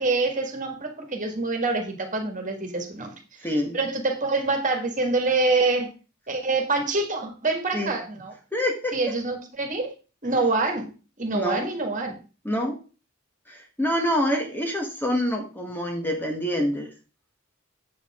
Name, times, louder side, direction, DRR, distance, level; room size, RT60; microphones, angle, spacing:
voice 1, 0.0-3.1 3.5-5.9 6.3-8.3 8.9-9.9 10.2-10.9 11.2-12.2, right 3 dB, 40° right, 4 dB, 1.8 m, -26 dB
voice 2, 3.4-3.8 7.7-7.9 8.5-9.0 11.3-11.7 12.4-12.8 13.5-16.9, equal, 10° left, 2 dB, 1.3 m, -26 dB
8.4 x 6.8 x 3.6 m, 0.34 s
head